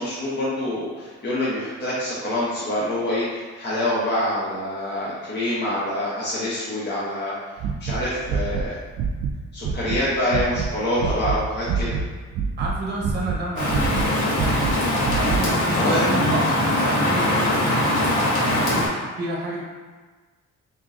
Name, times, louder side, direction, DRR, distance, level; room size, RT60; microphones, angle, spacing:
voice 1, 0.0-7.3 7.8-8.8 9.5-12.0 15.7-16.3, left 1 dB, 35° left, -7 dB, 0.9 m, -26 dB
sound 1, 7.6-10.0 10.3-10.7 11.0-12.1 12.3-13.4 13.7-15.5, right 5 dB, 65° right, 0.4 m, -26 dB
voice 2, 12.6-14.8 15.1-18.1 18.4-19.7, right 1 dB, 35° right, -2 dB, 0.9 m, -30 dB
Rain, 13.6-18.9, left 1 dB, 90° left, 1.0 m, -22 dB
3.6 x 2.7 x 3.6 m, 1.4 s
cardioid pair, 90°, 30 cm